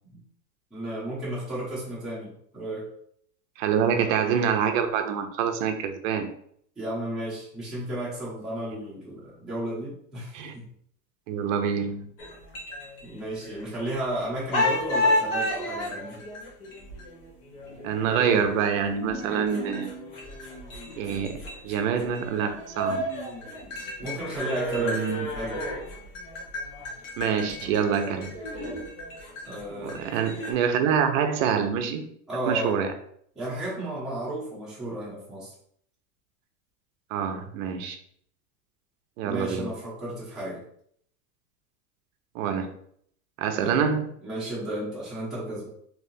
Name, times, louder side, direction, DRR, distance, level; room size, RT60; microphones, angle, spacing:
voice 1, 0.7-2.9 6.8-10.7 13.0-16.2 24.0-25.1 25.3-25.7 29.4-30.0 32.3-32.8 33.4-35.5 39.2-40.6 43.5-43.9 44.2-45.7, right 1 dB, ahead, -9 dB, 1.0 m, -33 dB
voice 2, 3.6-6.3 10.3-10.5 11.3-12.1 17.8-19.9 21.0-23.0 24.8-25.3 27.2-28.3 29.8-32.1 32.5-32.9 37.1-38.0 39.2-39.7 42.3-42.7 43.4-44.1, right 7 dB, 55° right, 6 dB, 0.6 m, -26 dB
sound 1, 12.2-14.1 14.5-30.5, left 1 dB, 45° left, 1.1 m, -32 dB
3.3 x 2.9 x 2.7 m, 0.65 s
supercardioid pair, 135°, 48 cm